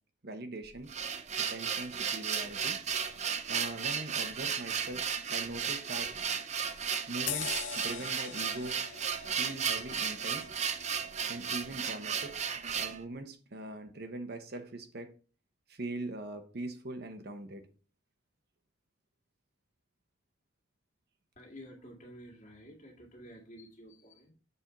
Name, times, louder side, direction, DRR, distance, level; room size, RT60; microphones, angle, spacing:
voice 1, 0.2-0.9 1.4-2.8 3.5-6.1 7.1-8.8 9.4-10.5 11.3-12.4 12.7-15.1 15.7-17.7, right 2 dB, 55° right, 1.0 m, -41 dB
sound 1, 0.6-13.0, right 7 dB, 35° right, 0.6 m, -34 dB
sound 2, 7.3-12.2 12.7-12.8, left 8 dB, 70° left, 0.7 m, -43 dB
voice 2, 21.4-24.3, equal, 40° left, 1.9 m, -51 dB
6.9 x 4.4 x 5.3 m
head